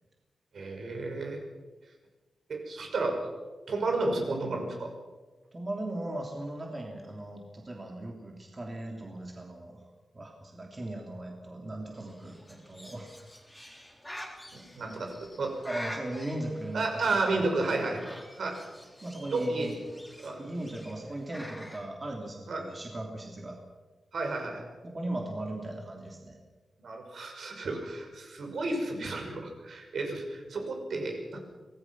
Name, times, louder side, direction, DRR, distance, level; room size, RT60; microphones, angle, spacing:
voice 1, 0.5-1.4 2.5-3.2 3.7-4.9 14.5-15.6 16.7-18.0 18.4-18.6 19.3-19.7 20.2-20.4 22.5-22.6 24.1-24.6 26.8-31.4, right 3 dB, 70° right, 2 dB, 6.0 m, -32 dB
voice 2, 5.5-9.8 10.1-13.1 15.6-17.8 19.0-19.8 20.4-23.6 24.8-26.4, right 1 dB, 25° right, 0 dB, 3.2 m, -38 dB
Bird, 11.9-21.8, equal, 5° left, 4.0 m, -47 dB
25.5 x 19.0 x 6.1 m, 1.3 s
wide cardioid pair, 135°, 0 cm